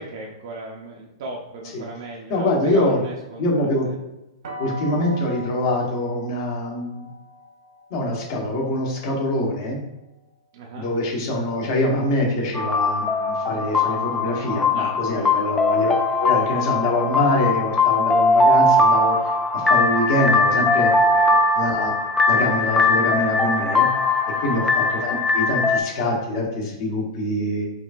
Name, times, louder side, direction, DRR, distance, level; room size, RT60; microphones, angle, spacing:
voice 1, 0.0-4.0 10.5-10.9 14.7-15.4 21.0-21.5 24.3-24.6, right 2 dB, 65° right, -1 dB, 0.6 m, -37 dB
voice 2, 2.3-3.0 3.4-3.9 4.6-7.1 7.9-9.8 10.8-19.2 19.5-20.9 21.6-21.9 22.3-23.9 24.4-27.6, left 1 dB, 50° left, -1 dB, 1.1 m, -24 dB
sound 1, 4.4-10.3, left 1 dB, 85° right, 1.2 m, -40 dB
sound 2, 12.5-25.8, left 2 dB, 10° left, 0.3 m, -20 dB
4.5 x 2.6 x 2.5 m, 0.96 s
hypercardioid pair, 145°, 3 cm